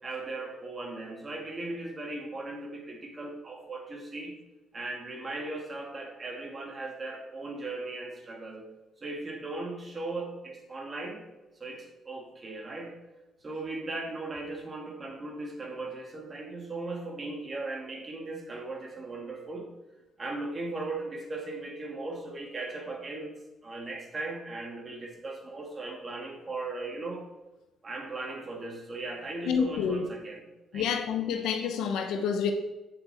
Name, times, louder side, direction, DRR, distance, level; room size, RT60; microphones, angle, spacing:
voice 1, 0.0-4.4 4.7-8.7 9.0-11.3 11.6-13.0 13.4-19.7 20.2-23.3 23.6-27.3 27.8-31.0, right 2 dB, 30° right, 1 dB, 2.5 m, -38 dB
voice 2, 29.5-30.0 30.7-32.5, left 7 dB, 85° left, 6 dB, 0.9 m, -28 dB
8.6 x 7.4 x 4.3 m, 1.1 s
cardioid pair, 90°, 0 cm